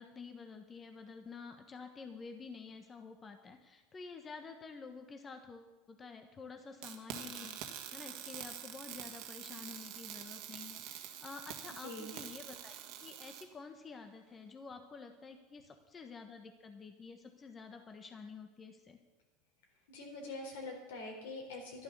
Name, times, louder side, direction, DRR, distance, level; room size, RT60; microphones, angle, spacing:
voice 1, 0.0-7.6 7.9-19.0, left 5 dB, 25° left, 5 dB, 1.3 m, -50 dB
sound 1, 6.8-13.4, right 10 dB, 65° right, 1.6 m, -46 dB
voice 2, 19.9-21.8, left 2 dB, 85° left, 1 dB, 4.0 m, -44 dB
12.0 x 11.0 x 6.8 m, 1.2 s
supercardioid pair, 105°, 0 cm